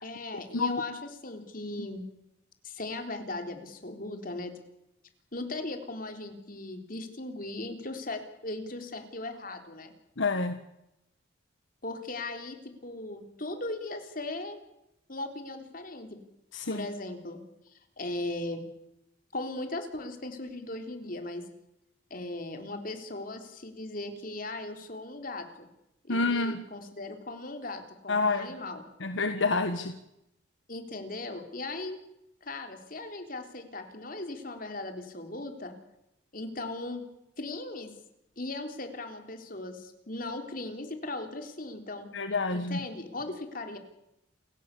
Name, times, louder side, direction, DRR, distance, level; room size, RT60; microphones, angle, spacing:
voice 1, 0.0-2.0 2.6-4.5 5.3-9.9 11.8-14.6 15.1-16.2 16.7-17.4 17.7-18.6 19.3-21.5 22.1-25.7 26.1-28.8 30.7-32.0 32.4-35.7 36.3-37.0 37.4-37.9 38.4-42.1 42.5-43.8, left 2 dB, 45° left, 6 dB, 3.8 m, -38 dB
voice 2, 10.2-10.6 16.5-16.9 26.1-26.6 28.1-28.5 29.0-29.9 42.1-42.8, left 3 dB, 75° left, 8 dB, 1.5 m, -28 dB
28.5 x 16.5 x 8.5 m, 0.85 s
head